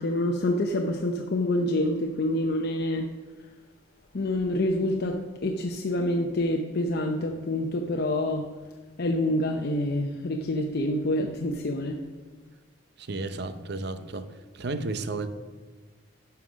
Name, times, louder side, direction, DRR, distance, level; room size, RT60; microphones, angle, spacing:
voice 1, 0.0-3.1 4.1-8.5 9.0-12.0, left 1 dB, 55° left, 0.7 m, -27 dB
voice 2, 13.0-14.3 14.5-15.3, right 3 dB, 60° right, 0.7 m, -32 dB
11.0 x 5.9 x 6.2 m
head